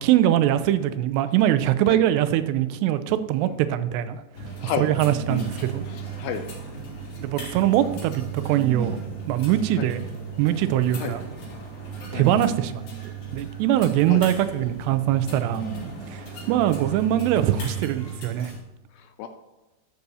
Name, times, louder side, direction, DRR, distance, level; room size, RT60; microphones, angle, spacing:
voice 1, 0.0-4.2 4.6-5.8 7.2-9.0 9.3-10.0 10.4-11.3 12.1-15.6 16.1-18.5, right 12 dB, 90° right, 12 dB, 2.7 m, -22 dB
sound 1, 4.3-18.6, right 5 dB, 65° left, 4.6 m, -35 dB
voice 2, 5.9-6.5 9.8-9.9 11.0-11.2 12.1-12.3 14.1-14.2 19.0-19.3, left 8 dB, 85° left, 7 dB, 2.2 m, -31 dB
12.5 x 6.8 x 2.7 m, 1.1 s
omnidirectional pair, 4.8 m